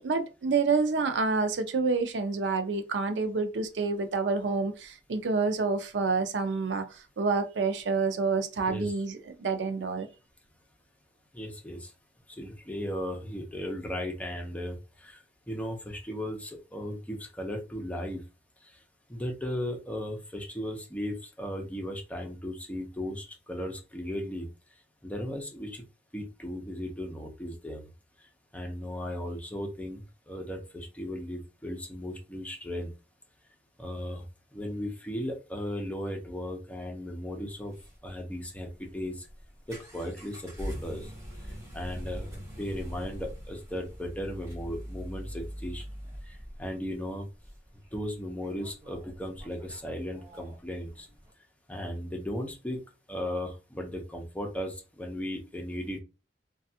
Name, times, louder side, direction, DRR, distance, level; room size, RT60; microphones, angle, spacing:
voice 1, 0.0-10.1, right 4 dB, 85° right, 0.5 m, -28 dB
voice 2, 11.3-11.9 12.4-15.2 15.5-18.2 19.1-24.5 25.0-25.8 26.1-27.9 28.5-32.9 33.8-34.2 34.5-37.7 38.0-39.3 39.7-41.1 41.7-45.8 46.2-47.2 47.9-51.1 51.7-52.8 53.1-56.0, equal, 10° left, 0.7 m, -36 dB
sound 1, 37.5-51.3, equal, 15° right, 1.3 m, -43 dB
3.2 x 2.3 x 2.7 m
head